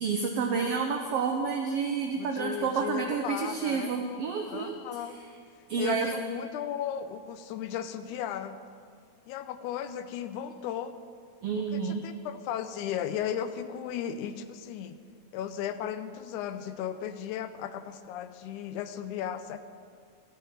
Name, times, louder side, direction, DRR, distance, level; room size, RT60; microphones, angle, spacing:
voice 1, 0.0-5.0 5.7-6.1 11.4-12.1, right 5 dB, 85° right, 3 dB, 1.3 m, -29 dB
voice 2, 2.2-4.0 4.5-5.1 5.8-8.6 9.3-11.0 11.7-15.0 15.3-19.6, left 9 dB, 85° left, 11 dB, 2.0 m, -35 dB
14.0 x 4.7 x 8.7 m, 2.2 s
omnidirectional pair, 3.5 m